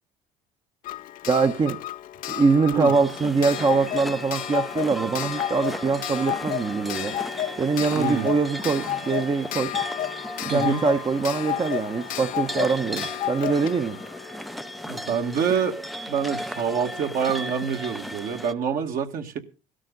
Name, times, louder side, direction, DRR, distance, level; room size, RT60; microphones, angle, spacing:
Clock, 0.8-15.4 16.6-16.7 16.9-17.0, left 12 dB, 60° left, 0.7 m, -32 dB
voice 1, 1.3-1.8 2.3-7.1 7.6-9.7 10.4-14.0, right 4 dB, 30° right, 7 dB, 1.0 m, -23 dB
sound 1, 2.9-18.5, equal, ahead, 0.6 m, -36 dB
voice 2, 7.9-8.3 10.5-10.8 14.9-15.8 16.1-19.4, right 6 dB, 60° right, 4 dB, 2.1 m, -26 dB
16.5 x 12.5 x 4.0 m, 0.34 s
supercardioid pair, 80°, 16 cm